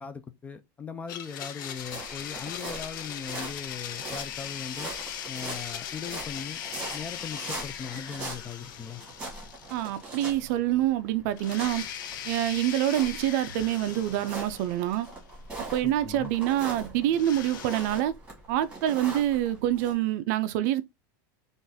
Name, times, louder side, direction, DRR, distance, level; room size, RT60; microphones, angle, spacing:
voice 1, 0.0-4.9 5.3-6.6 6.9-9.0 15.8-16.3, left 6 dB, 15° left, 0.4 m, -39 dB
Domestic sounds home sounds, 1.1-10.2 10.5-10.6 11.4-15.3 17.1-18.0, left 10 dB, 80° left, 0.5 m, -39 dB
sound 1, 1.8-19.9, right 2 dB, 10° right, 1.5 m, -42 dB
voice 2, 9.7-11.8 12.2-15.1 15.6-18.1 18.5-20.8, right 12 dB, 55° right, 0.4 m, -26 dB
3.8 x 2.5 x 2.6 m
supercardioid pair, 150°, 11 cm